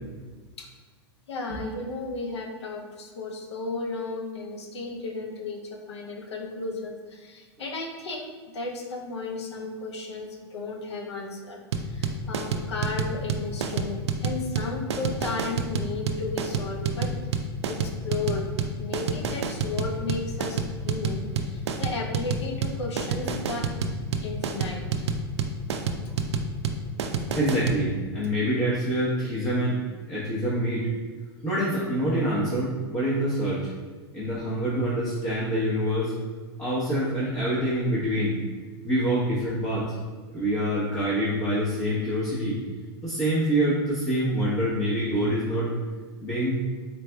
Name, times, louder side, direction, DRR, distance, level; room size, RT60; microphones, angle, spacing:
voice 1, 1.3-17.1 17.7-18.5 18.8-23.7 24.2-24.9 26.3-26.4, left 3 dB, 85° left, 2 dB, 0.6 m, -34 dB
sound 1, 11.7-27.8, right 5 dB, 85° right, 0.4 m, -28 dB
voice 2, 27.3-29.8 30.1-30.9 31.4-33.7 34.1-36.1 36.6-38.4 38.8-39.9 40.3-42.6 43.0-45.7 46.2-46.6, right 1 dB, 20° left, -8 dB, 0.9 m, -26 dB
4.0 x 3.2 x 2.2 m, 1.4 s
hypercardioid pair, 110°, 14 cm